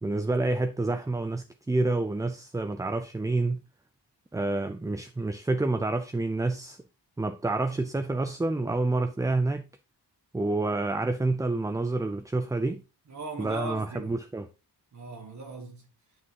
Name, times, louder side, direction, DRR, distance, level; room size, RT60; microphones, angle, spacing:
voice 1, 0.0-3.6 4.3-6.8 7.2-9.6 10.3-12.8 13.4-14.5, right 2 dB, 10° right, 0.4 m, -28 dB
voice 2, 13.1-14.2 14.9-15.9, right 2 dB, 45° right, 1.7 m, -39 dB
9.6 x 6.1 x 2.8 m
wide cardioid pair, 135°, 40 cm